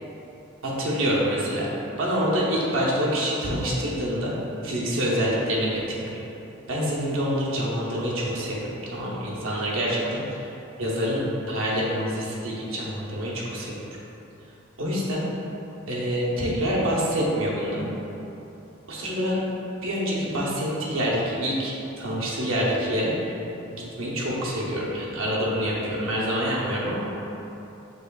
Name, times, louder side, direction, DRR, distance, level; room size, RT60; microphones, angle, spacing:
voice 1, 0.6-1.7 2.0-4.3 4.6-6.2 6.7-10.4 10.8-13.7 14.8-15.3 15.9-17.9 18.9-19.4 19.8-23.3 23.7-27.1, equal, 70° right, -5 dB, 0.8 m, -26 dB
5.6 x 3.6 x 2.3 m, 3.0 s
head